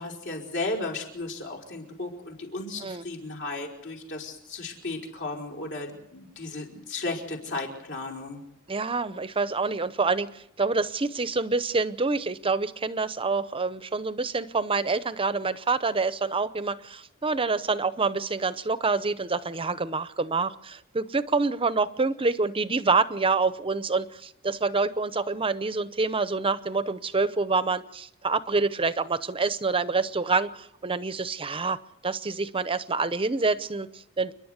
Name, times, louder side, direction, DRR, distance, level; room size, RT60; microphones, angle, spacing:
voice 1, 0.0-8.4, left 2 dB, 60° left, 1 dB, 5.1 m, -35 dB
voice 2, 8.7-31.8 32.0-34.3, right 4 dB, 25° right, 14 dB, 0.8 m, -27 dB
29.5 x 11.0 x 8.2 m, 0.79 s
head